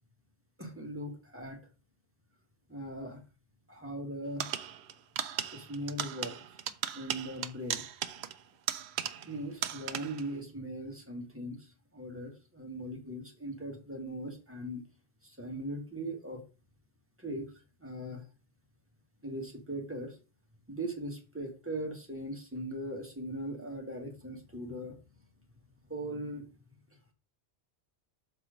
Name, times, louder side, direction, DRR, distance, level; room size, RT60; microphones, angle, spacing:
voice 1, 0.6-1.6 2.7-3.2 3.7-4.5 5.5-6.4 6.9-7.8 9.2-14.8 15.2-16.4 17.2-18.3 19.2-20.2 20.7-25.0 25.9-26.4, right 1 dB, 10° right, 2 dB, 1.4 m, -39 dB
sound 1, 4.4-9.4 9.6-10.3, right 9 dB, 75° right, 0.9 m, -37 dB
6.8 x 4.3 x 5.0 m, 0.34 s
omnidirectional pair, 1.1 m